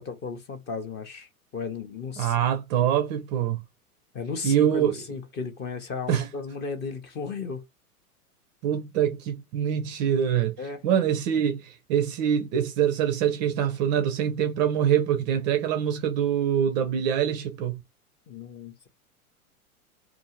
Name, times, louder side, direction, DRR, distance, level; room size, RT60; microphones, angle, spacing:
voice 1, 0.0-2.4 2.7-2.9 4.1-7.6 10.6-10.8 18.3-18.9, left 5 dB, 25° left, 0.6 m, -35 dB
voice 2, 2.2-3.6 4.4-4.9 6.1-6.2 8.6-10.5 10.8-17.8, right 9 dB, 30° right, 0.4 m, -24 dB
2.6 x 2.4 x 2.9 m
hypercardioid pair, 100°, 45 cm